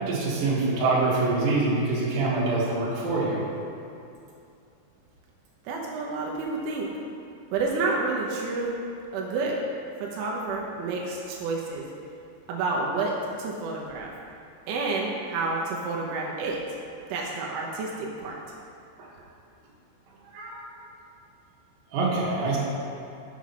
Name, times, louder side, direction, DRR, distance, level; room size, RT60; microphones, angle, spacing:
voice 1, 0.0-3.4 19.0-19.1 20.2-20.7 21.9-22.6, right 3 dB, 55° right, -6 dB, 3.2 m, -25 dB
voice 2, 5.7-6.9 7.5-8.8 9.1-9.6 10.0-11.8 12.5-13.1 13.4-14.1 14.7-16.6 17.1-18.4, right 3 dB, 80° right, -2 dB, 3.3 m, -29 dB
8.4 x 6.2 x 5.9 m, 2.6 s
omnidirectional pair, 5.5 m